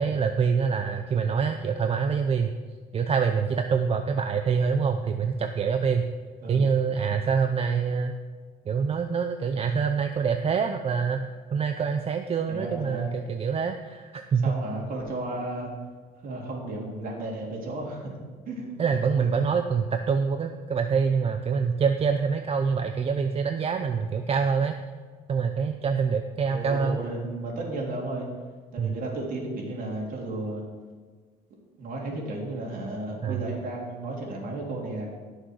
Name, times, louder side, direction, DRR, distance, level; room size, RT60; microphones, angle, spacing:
voice 1, 0.0-2.5 2.9-6.1 6.5-8.1 8.7-14.5 18.8-24.8 25.3-27.0 28.8-29.0 33.2-33.6, right 6 dB, 35° right, 6 dB, 0.7 m, -25 dB
voice 2, 12.5-13.1 14.4-15.7 16.2-18.1 18.5-18.7 19.2-19.3 26.5-28.3 28.7-30.6 31.8-35.1, right 2 dB, 55° right, -2 dB, 3.5 m, -33 dB
17.0 x 6.6 x 4.8 m, 1.5 s
cardioid pair, 110°, 17 cm